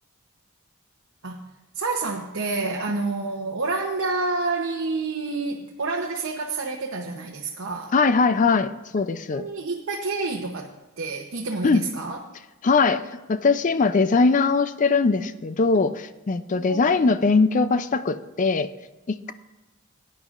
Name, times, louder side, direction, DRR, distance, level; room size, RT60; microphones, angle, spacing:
voice 1, 1.7-7.9 9.3-12.2 16.5-17.1, right 3 dB, 70° right, 0 dB, 0.8 m, -29 dB
voice 2, 7.9-9.5 11.6-11.8 12.6-18.7 19.1-19.3, left 4 dB, 35° left, 12 dB, 0.4 m, -21 dB
17.0 x 9.7 x 2.5 m, 1.1 s
head